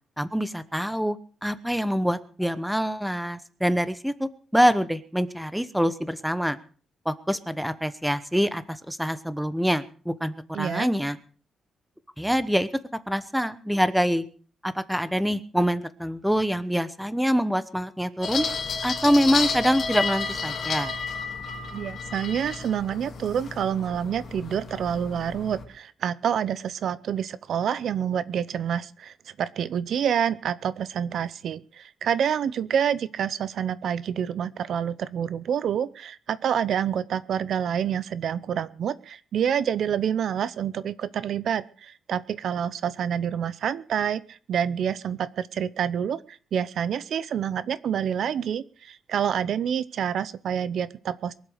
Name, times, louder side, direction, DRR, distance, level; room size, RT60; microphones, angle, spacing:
voice 1, 0.2-1.2 1.4-6.6 7.1-11.2 12.2-14.3 14.6-18.4 18.8-20.9, equal, ahead, 14 dB, 1.0 m, -25 dB
voice 2, 10.5-10.9 21.7-51.3, right 8 dB, 60° right, 17 dB, 0.7 m, -28 dB
sound 1, 18.2-25.6, left 4 dB, 45° left, 2.9 m, -31 dB
23.0 x 8.1 x 6.5 m, 0.42 s
cardioid pair, 155°, 0 cm